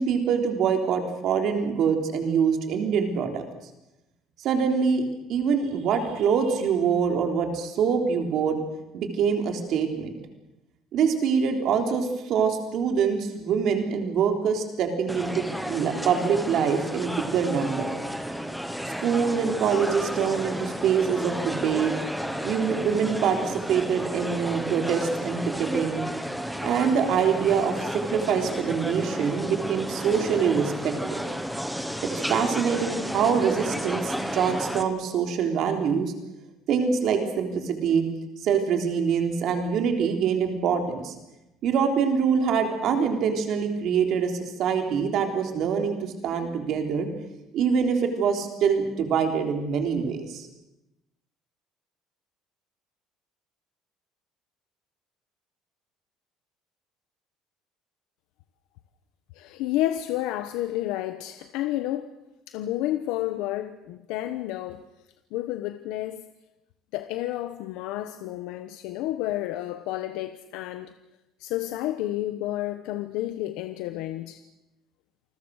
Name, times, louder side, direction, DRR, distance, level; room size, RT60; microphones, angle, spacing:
voice 1, 0.0-3.4 4.4-5.0 5.3-8.6 8.9-10.2 10.9-17.9 19.0-21.9 22.4-26.0 26.6-31.2 32.1-36.1 36.7-38.1 38.4-41.1 41.6-47.1 47.5-50.5, right 6 dB, 45° right, 3.6 m, -25 dB
sound 1, 15.1-34.8, equal, ahead, 1.1 m, -32 dB
voice 2, 59.3-62.1 62.5-64.9 65.3-66.3 66.9-70.9 71.4-74.4, left 14 dB, 85° left, 1.1 m, -30 dB
28.5 x 21.0 x 6.5 m
cardioid pair, 180°, 0 cm